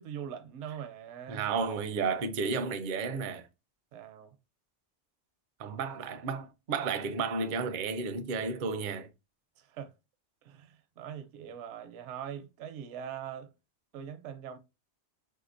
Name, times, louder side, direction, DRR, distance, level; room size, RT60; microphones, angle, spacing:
voice 1, 0.0-1.5 3.9-4.4 9.6-9.9 10.4-13.5 13.9-14.6, right 9 dB, 80° right, 0.9 m, -42 dB
voice 2, 1.3-3.5 5.6-9.1, right 5 dB, 60° right, 0.6 m, -32 dB
3.7 x 2.8 x 2.5 m
omnidirectional pair, 1.2 m